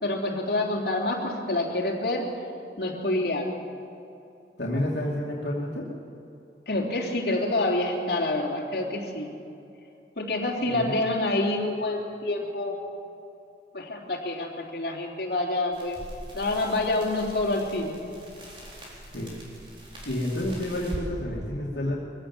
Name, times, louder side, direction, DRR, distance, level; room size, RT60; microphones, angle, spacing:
voice 1, 0.0-2.3 2.8-3.5 6.7-9.3 10.1-12.8 13.7-16.0 16.3-18.0, left 2 dB, 60° left, -2 dB, 3.4 m, -27 dB
voice 2, 4.6-5.9 10.6-11.0 19.1-19.4 20.0-22.0, left 1 dB, 75° left, -4 dB, 2.7 m, -30 dB
sound 1, 15.7-21.1, equal, 30° right, 4.2 m, -42 dB
22.5 x 15.5 x 7.4 m, 2.7 s
head